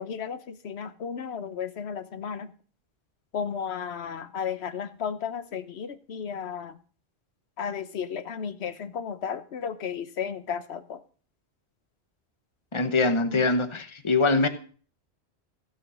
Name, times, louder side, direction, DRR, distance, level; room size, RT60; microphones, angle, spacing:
voice 1, 0.0-2.5 3.3-6.8 7.6-11.0 13.3-13.5, left 7 dB, 70° left, 1.1 m, -34 dB
voice 2, 12.7-14.5, left 3 dB, 30° left, 1.0 m, -23 dB
15.5 x 6.3 x 6.2 m
omnidirectional pair, 1.1 m